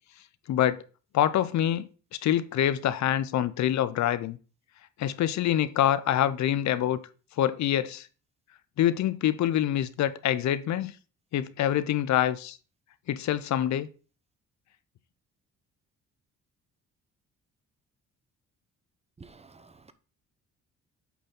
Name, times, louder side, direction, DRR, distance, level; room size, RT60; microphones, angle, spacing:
voice 1, 0.5-0.8 1.1-1.9 2.2-4.4 5.0-7.0 7.4-8.1 8.8-10.9 11.3-12.6 13.1-13.9, left 11 dB, 65° left, 0.6 m, -25 dB
voice 2, 19.2-19.9, right 4 dB, 20° right, 0.7 m, -51 dB
8.3 x 4.4 x 3.7 m
cardioid pair, 90°, 30 cm